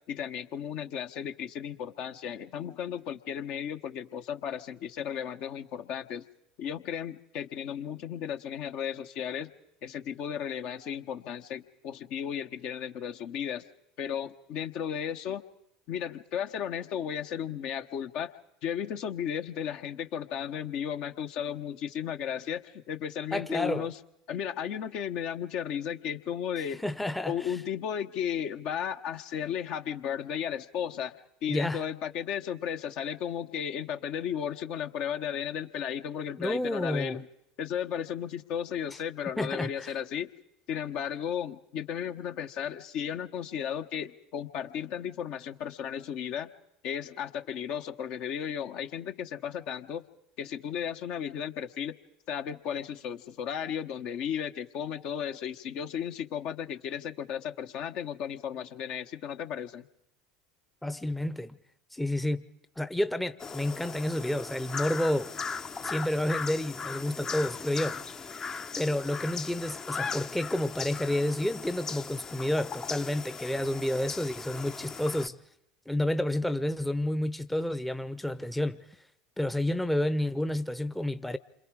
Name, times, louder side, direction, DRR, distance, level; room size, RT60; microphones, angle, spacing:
voice 1, 0.1-6.2 6.6-9.5 9.8-13.6 14.0-15.4 15.9-18.3 18.6-23.9 24.3-26.9 27.3-31.1 31.4-37.3 37.6-40.3 40.7-46.5 46.8-50.0 50.4-52.0 52.3-59.8, left 8 dB, 55° left, 1.2 m, -34 dB
voice 2, 23.3-23.9 26.8-27.6 31.5-31.8 36.4-37.2 39.4-39.9 60.8-61.5 61.9-62.5 62.8-65.3 65.8-68.0 68.8-75.4 75.9-78.8 79.4-81.4, left 1 dB, 5° left, 0.8 m, -30 dB
sound 1, 63.4-75.3, left 5 dB, 30° left, 0.9 m, -38 dB
28.0 x 26.5 x 4.9 m
figure-of-eight pair, 75°, 2 cm